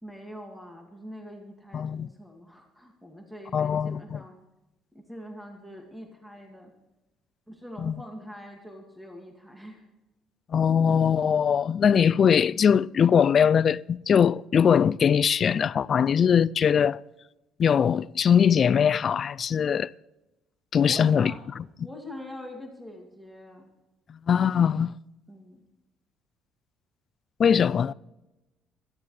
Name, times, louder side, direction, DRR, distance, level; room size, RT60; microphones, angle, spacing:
voice 1, 0.0-4.3 4.9-6.7 7.5-9.8 20.8-21.4 21.8-23.7 25.3-25.6, equal, 5° right, 2.2 m, -43 dB
voice 2, 1.7-2.1 3.5-4.2 7.8-8.0 10.5-17.0 17.6-19.9 20.7-21.3 24.1-24.9 27.4-27.9, left 7 dB, 40° left, 0.3 m, -21 dB
16.5 x 13.5 x 3.3 m
cardioid pair, 110°, 0 cm